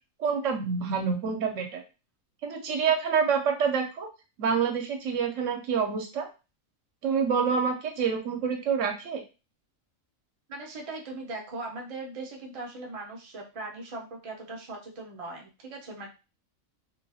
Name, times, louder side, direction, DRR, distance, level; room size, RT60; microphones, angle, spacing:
voice 1, 0.2-1.8 2.4-4.1 4.4-6.3 7.0-9.2, right 6 dB, 70° right, 3 dB, 0.9 m, -27 dB
voice 2, 10.5-16.1, right 2 dB, 40° right, 0 dB, 0.5 m, -39 dB
2.7 x 2.7 x 2.3 m, 0.30 s
omnidirectional pair, 1.4 m